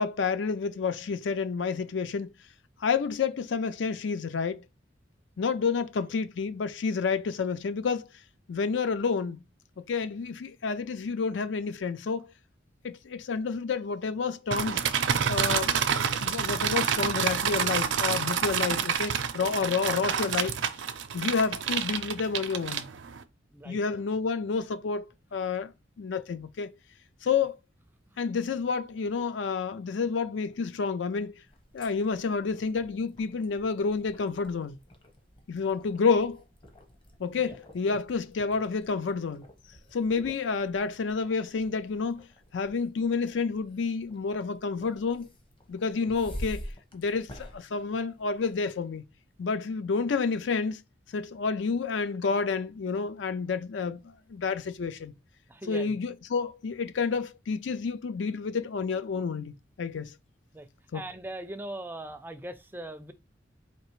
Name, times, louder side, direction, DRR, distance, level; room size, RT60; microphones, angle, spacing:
voice 1, 0.0-2.3 2.8-4.6 5.4-8.1 8.5-9.4 9.8-12.3 12.8-14.8 15.3-15.8 16.2-20.6 21.1-22.9 23.6-26.7 27.2-27.5 28.2-31.4 31.7-34.8 35.5-36.4 37.2-39.5 39.9-42.3 42.5-45.3 45.7-49.0 49.4-50.8 51.1-55.1 55.7-60.1 60.9-61.0, left 5 dB, 75° left, 0.4 m, -29 dB
sound 1, 14.5-23.2, right 7 dB, 80° right, 0.5 m, -28 dB
sound 2, 31.5-48.7, equal, 30° left, 0.9 m, -48 dB
voice 2, 55.5-56.0 60.5-60.7 60.9-63.1, right 1 dB, 10° right, 0.4 m, -40 dB
4.4 x 2.8 x 3.0 m
head